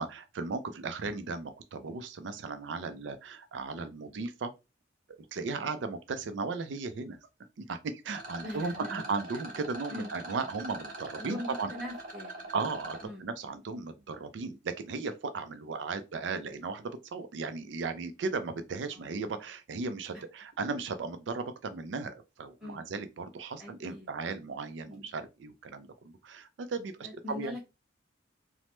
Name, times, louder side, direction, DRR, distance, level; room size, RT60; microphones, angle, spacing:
voice 1, 0.0-4.5 5.3-7.2 7.6-11.7 12.5-27.5, right 4 dB, 85° right, 0.4 m, -36 dB
Rattle, 8.1-13.1, right 2 dB, 45° right, 0.9 m, -43 dB
voice 2, 8.4-9.0 9.9-10.2 11.2-12.5 13.0-13.2 18.9-19.2 22.6-22.9 23.6-24.1 24.9-25.1 27.0-27.6, left 1 dB, 5° right, 1.4 m, -42 dB
3.1 x 2.0 x 3.0 m
head